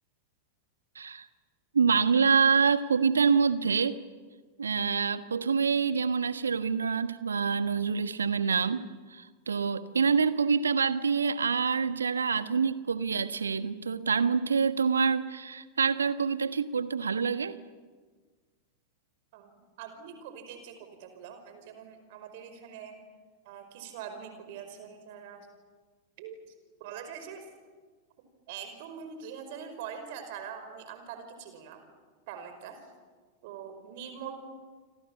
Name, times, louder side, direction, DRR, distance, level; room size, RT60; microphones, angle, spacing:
voice 1, 0.9-1.2 1.7-4.0 4.6-8.8 9.1-17.6, right 5 dB, 75° right, 12 dB, 1.3 m, -26 dB
voice 2, 19.8-23.0 23.5-25.5 26.2-26.5 26.8-27.5 28.5-31.8 32.3-32.9 33.4-34.4, right 7 dB, 50° right, 8 dB, 5.2 m, -43 dB
29.0 x 26.0 x 7.2 m, 1.5 s
figure-of-eight pair, 90°, 0 cm